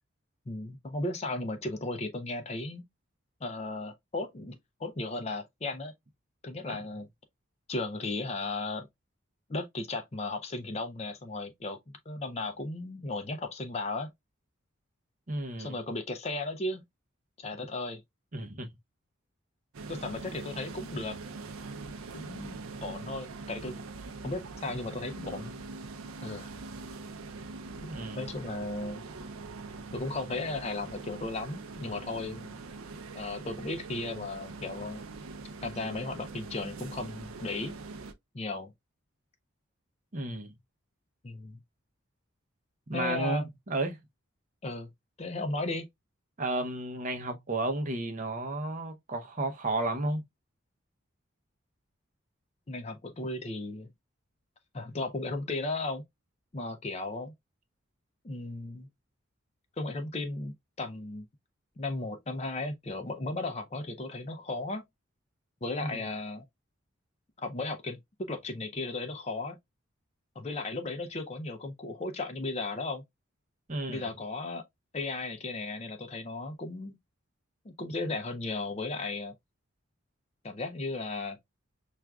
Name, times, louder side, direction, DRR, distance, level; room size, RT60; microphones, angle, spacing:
voice 1, 0.5-2.8 3.4-5.9 6.4-7.1 7.7-8.9 9.5-11.8 12.1-14.1 15.6-16.8 17.4-18.0 19.9-21.2 22.1-23.8 24.2-25.5 26.2-26.5 28.1-29.0 29.9-32.6 33.1-35.0 35.6-37.7 38.3-38.7 41.2-41.6 42.9-43.5 44.6-44.9 45.2-45.9 52.7-53.9 54.7-56.0 56.5-57.3 58.2-58.9 59.8-61.3 61.8-64.8 65.6-66.5 67.4-69.6 70.4-73.0 73.9-74.6 74.9-76.9 77.6-79.3 80.4-81.4, left 2 dB, 30° left, 0.5 m, -35 dB
voice 2, 15.3-15.8 18.3-18.7 27.9-28.2 40.1-40.5 42.9-44.0 46.4-50.2 65.8-66.0 73.7-74.1, right 2 dB, 35° right, 0.6 m, -32 dB
sound 1, 19.7-38.1, right 3 dB, 85° right, 0.5 m, -43 dB
5.9 x 2.4 x 2.2 m
head